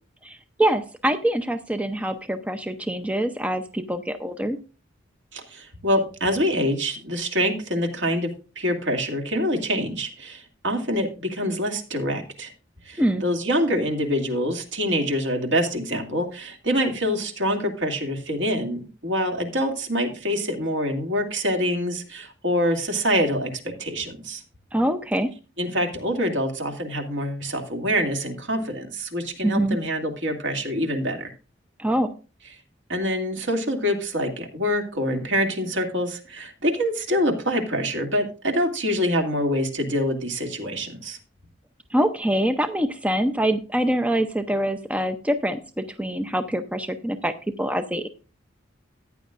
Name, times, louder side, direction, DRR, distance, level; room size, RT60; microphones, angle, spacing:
voice 1, 0.2-4.6 13.0-13.2 24.7-25.3 29.4-29.8 31.8-32.1 41.9-48.1, right 1 dB, 5° right, 8 dB, 0.6 m, -24 dB
voice 2, 5.3-12.5 12.9-24.4 25.6-31.3 32.9-41.2, equal, 65° right, 4 dB, 2.4 m, -25 dB
14.5 x 9.8 x 2.5 m, 0.33 s
head